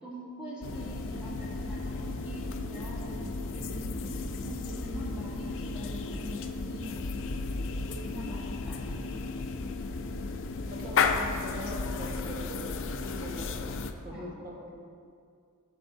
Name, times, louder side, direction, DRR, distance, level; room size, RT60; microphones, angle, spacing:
voice 1, 0.0-7.4 7.9-9.2 13.4-13.5 14.1-14.3, right 1 dB, 5° right, -9 dB, 1.9 m, -43 dB
sound 1, 0.6-13.9, left 4 dB, 60° left, 0.5 m, -34 dB
sound 2, 1.0-6.5, right 2 dB, 90° right, 0.7 m, -50 dB
voice 2, 10.7-12.7 13.0-13.5 14.0-14.8, equal, 40° right, -3 dB, 1.4 m, -42 dB
14.0 x 6.3 x 2.7 m, 2.3 s
head